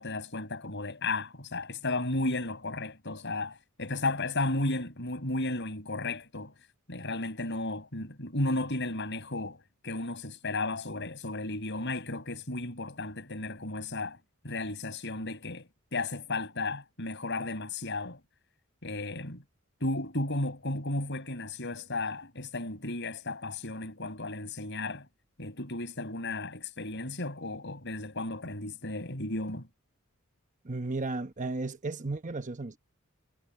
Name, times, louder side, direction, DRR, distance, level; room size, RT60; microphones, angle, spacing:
voice 1, 0.0-6.5 6.9-14.2 14.4-18.2 18.8-19.4 19.8-25.1 25.4-29.7, left 2 dB, 55° left, 6.5 m, -34 dB
voice 2, 30.6-32.8, right 2 dB, 35° right, 1.0 m, -34 dB
head